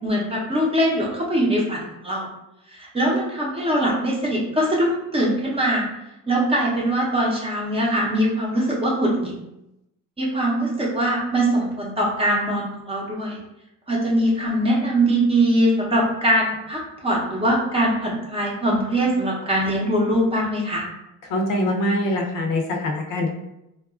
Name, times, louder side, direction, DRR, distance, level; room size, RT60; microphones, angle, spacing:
voice 1, 0.0-2.3 2.7-5.9 6.3-9.3 10.2-13.4 13.9-20.9, right 1 dB, 15° right, -4 dB, 0.6 m, -22 dB
voice 2, 21.3-23.3, left 1 dB, 70° left, 1 dB, 0.6 m, -23 dB
3.9 x 2.3 x 2.3 m, 0.89 s
cardioid pair, 140°, 34 cm